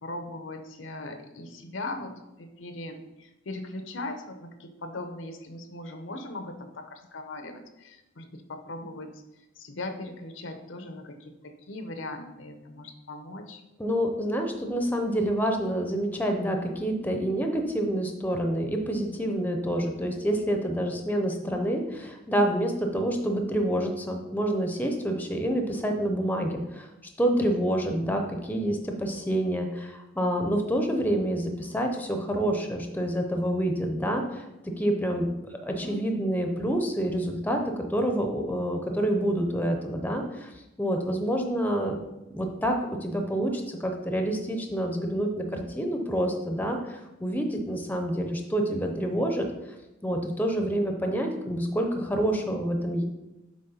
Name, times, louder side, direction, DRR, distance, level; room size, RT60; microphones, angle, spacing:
voice 1, 0.0-2.1 2.4-9.2 9.6-13.6 35.8-36.0, left 2 dB, 70° left, 7 dB, 0.8 m, -39 dB
voice 2, 13.8-26.9 27.2-40.5 40.8-42.0 42.3-49.5 50.0-53.0, right 1 dB, 10° left, 4 dB, 0.7 m, -28 dB
7.8 x 3.1 x 5.6 m, 0.98 s
head